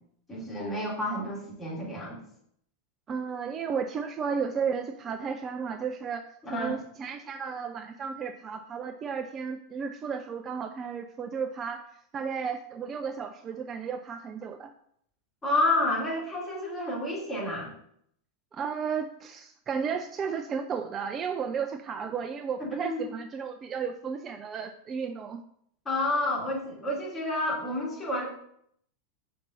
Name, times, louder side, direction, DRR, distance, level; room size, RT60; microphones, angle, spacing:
voice 1, 0.3-2.2 6.5-6.8 15.4-17.7 22.6-23.0 25.8-28.2, left 1 dB, 15° left, -5 dB, 3.0 m, -29 dB
voice 2, 3.1-11.9 12.1-14.7 18.5-25.4, right 6 dB, 25° right, 7 dB, 0.4 m, -33 dB
5.2 x 4.3 x 5.5 m, 0.69 s
figure-of-eight pair, 90°, 0 cm